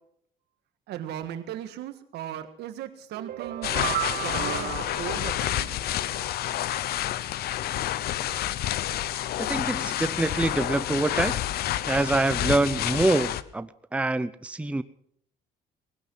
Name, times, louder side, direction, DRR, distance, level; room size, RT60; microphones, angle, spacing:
voice 1, 0.9-5.8, right 11 dB, 80° right, 10 dB, 1.6 m, -37 dB
sound 1, 3.1-6.2, right 13 dB, 60° right, 0.6 m, -34 dB
sound 2, 3.6-13.4, left 12 dB, 70° left, 0.8 m, -29 dB
voice 2, 9.4-11.4 11.9-14.8, right 2 dB, 5° right, 13 dB, 0.6 m, -25 dB
19.0 x 11.5 x 6.2 m, 0.68 s
cardioid pair, 110°, 17 cm